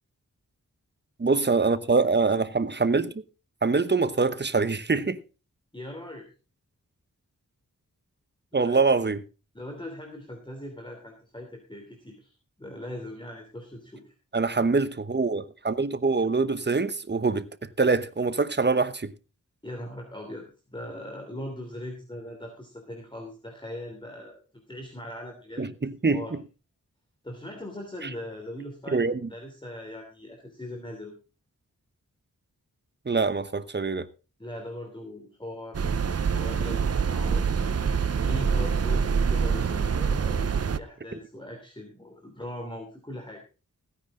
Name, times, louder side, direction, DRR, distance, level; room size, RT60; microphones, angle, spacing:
voice 1, 1.2-3.2 3.6-5.2 8.5-9.2 14.3-19.1 25.6-26.4 28.0-28.1 28.9-29.3 33.0-34.1, right 4 dB, 30° right, 1.0 m, -24 dB
voice 2, 5.7-6.3 8.5-8.8 9.5-12.3 12.6-14.1 19.6-25.7 26.1-26.3 27.2-31.2 34.4-36.0 36.3-37.4 38.2-43.4, left 1 dB, 15° left, 3.1 m, -40 dB
sound 1, 35.7-40.8, right 6 dB, 50° right, 0.7 m, -25 dB
16.0 x 9.8 x 3.7 m
wide cardioid pair, 75°, 33 cm